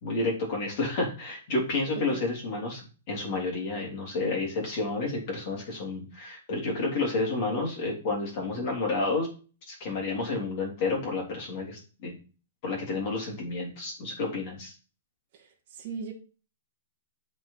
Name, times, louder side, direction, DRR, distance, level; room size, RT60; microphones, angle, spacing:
voice 1, 0.0-9.3 9.7-12.2 12.6-14.7, left 3 dB, 30° left, 3.6 m, -30 dB
voice 2, 1.9-2.3 15.3-16.1, right 6 dB, 35° right, 1.5 m, -39 dB
7.5 x 4.6 x 5.8 m
hypercardioid pair, 175°, 0 cm